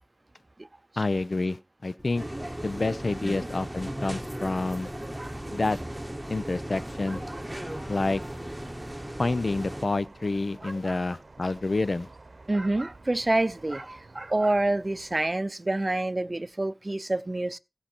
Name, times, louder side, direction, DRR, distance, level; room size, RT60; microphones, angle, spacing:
voice 1, 1.0-2.2 2.6-4.9 5.5-5.8 6.3-7.2 7.9-8.2 9.2-12.1, left 2 dB, 85° left, 0.5 m, -28 dB
sound 1, 2.0-9.1, equal, 20° left, 8.0 m, -54 dB
sound 2, 2.2-9.9, right 1 dB, 15° right, 1.3 m, -37 dB
voice 2, 5.0-5.3 7.1-7.7 10.6-11.0 12.5-17.6, right 2 dB, 50° right, 0.5 m, -28 dB
sound 3, 5.4-15.2, right 3 dB, 85° right, 0.8 m, -51 dB
16.0 x 5.7 x 4.4 m
wide cardioid pair, 55°, 0 cm